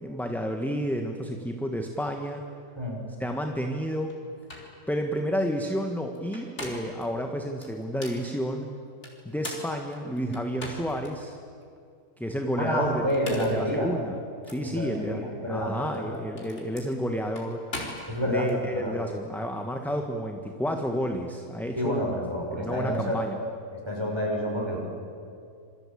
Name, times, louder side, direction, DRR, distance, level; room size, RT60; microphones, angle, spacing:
voice 1, 0.0-2.4 3.2-4.2 4.9-8.7 9.2-11.4 12.2-14.2 14.5-17.6 18.3-22.2 22.5-23.4, equal, ahead, 4 dB, 1.4 m, -31 dB
sound 1, 4.1-4.2 4.5-4.7 6.2-7.0 7.6-8.2 9.0-11.1 11.6-11.7 13.0-13.7 14.4-14.6 15.8-18.6, left 1 dB, 40° left, 4.7 m, -40 dB
voice 2, 12.6-13.9 14.6-16.2 18.1-19.0 21.8-23.2 23.7-24.8, equal, 15° right, 0 dB, 6.1 m, -29 dB
28.0 x 24.5 x 8.5 m, 2.4 s
omnidirectional pair, 1.7 m